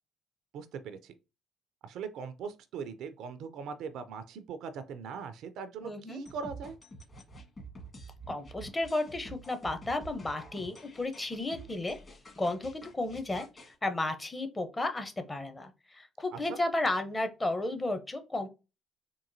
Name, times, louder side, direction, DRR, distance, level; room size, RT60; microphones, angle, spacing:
voice 1, 0.5-1.1 1.8-6.8 16.3-16.6, right 6 dB, 60° right, 0.4 m, -40 dB
voice 2, 5.8-6.2 8.3-12.0 12.4-18.5, left 2 dB, 20° left, 0.7 m, -33 dB
sound 1, 6.3-13.8, right 2 dB, 35° left, 1.5 m, -48 dB
3.7 x 2.6 x 2.6 m
figure-of-eight pair, 50°, 0 cm